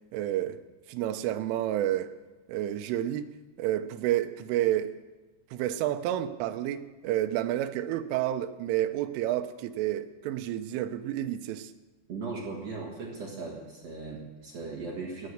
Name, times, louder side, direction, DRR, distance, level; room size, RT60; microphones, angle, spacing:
voice 1, 0.1-0.6 0.9-2.1 2.5-3.3 3.6-5.0 5.5-11.7, right 12 dB, 85° right, 3.3 m, -30 dB
voice 2, 12.1-15.3, right 4 dB, 65° right, 1.6 m, -38 dB
17.0 x 9.7 x 6.5 m
omnidirectional pair, 5.6 m